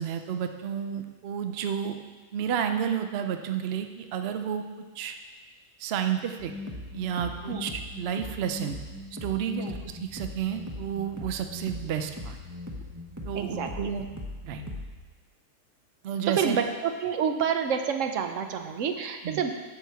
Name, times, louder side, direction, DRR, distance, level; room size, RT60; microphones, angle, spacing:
voice 1, 0.0-2.0 2.3-4.6 4.9-5.2 5.8-6.5 6.9-8.8 9.2-12.4 13.3-14.1 14.4-14.6 16.0-16.6 19.2-19.4, right 8 dB, 80° right, 7 dB, 0.5 m, -31 dB
sound 1, 6.4-15.0, left 2 dB, 15° right, 0.7 m, -39 dB
voice 2, 13.4-13.7 16.3-19.5, right 7 dB, 60° right, 6 dB, 0.9 m, -28 dB
9.1 x 4.8 x 6.7 m, 1.3 s
omnidirectional pair, 1.8 m